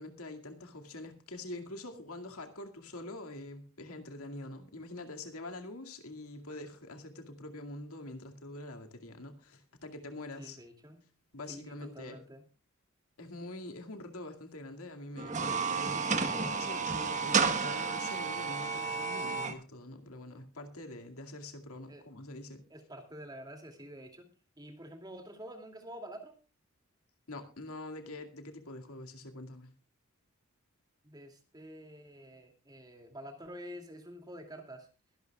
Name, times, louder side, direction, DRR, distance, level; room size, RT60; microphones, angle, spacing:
voice 1, 0.0-10.6 11.3-12.2 13.2-22.6 27.3-29.7, left 2 dB, 85° left, 5 dB, 2.2 m, -45 dB
voice 2, 10.4-11.1 11.5-12.4 21.9-22.0 22.7-24.3 24.6-26.4 31.0-34.9, equal, 20° right, 5 dB, 2.5 m, -48 dB
sound 1, 15.2-19.5, right 5 dB, 35° right, 1.4 m, -31 dB
22.5 x 11.5 x 2.3 m, 0.34 s
head